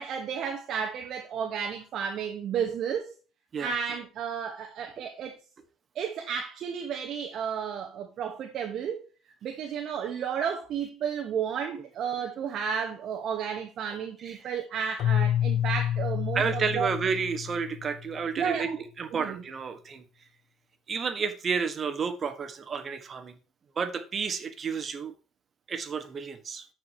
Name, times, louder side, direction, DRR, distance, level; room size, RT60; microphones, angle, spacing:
voice 1, 0.0-3.1 3.6-5.3 5.9-9.0 9.4-16.9 18.4-18.8 19.2-19.4, right 7 dB, 60° right, 1.2 m, -32 dB
voice 2, 14.2-14.5 16.3-20.0 20.9-23.4 23.7-25.1 25.7-26.7, right 5 dB, 40° right, 1.4 m, -31 dB
Keyboard (musical), 15.0-18.1, left 11 dB, 60° left, 0.3 m, -28 dB
13.5 x 4.9 x 2.9 m
supercardioid pair, 90°, 0 cm